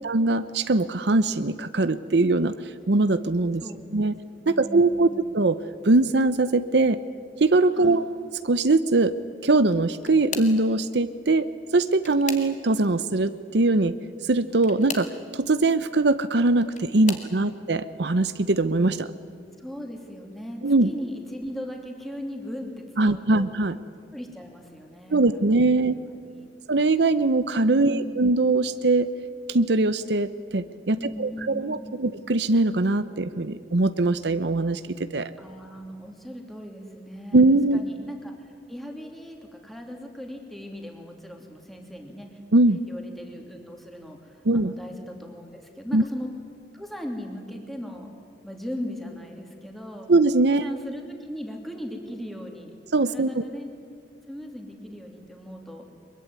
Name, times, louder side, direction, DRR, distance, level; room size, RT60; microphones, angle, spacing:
voice 1, 0.0-2.5 2.9-3.6 3.9-4.1 4.5-5.1 5.3-5.6 5.8-7.0 7.4-8.0 8.4-9.1 9.4-11.5 11.7-13.9 14.3-19.1 20.6-20.9 23.0-23.8 25.1-26.0 26.7-29.1 29.5-34.8 35.1-35.3 37.3-37.8 42.5-42.8 44.4-44.7 45.9-46.0 50.1-50.6 52.9-53.4, right 2 dB, 70° right, 12 dB, 0.8 m, -21 dB
voice 2, 3.6-3.9 4.4-5.3 7.7-8.2 17.1-17.2 17.5-17.7 19.6-23.5 24.1-25.9 26.2-26.6 27.8-28.2 30.9-32.1 35.4-37.4 37.7-42.3 42.9-46.3 46.7-48.1 48.4-50.1 50.5-52.7 53.1-53.7 54.3-55.9, equal, ahead, 2 dB, 2.9 m, -38 dB
sound 1, 9.6-10.7 11.6-12.9 14.5-15.2 16.3-17.3 18.1-18.4 18.8-19.0 20.3-20.4, left 6 dB, 45° left, 2.1 m, -38 dB
23.5 x 22.0 x 9.5 m, 2.2 s
head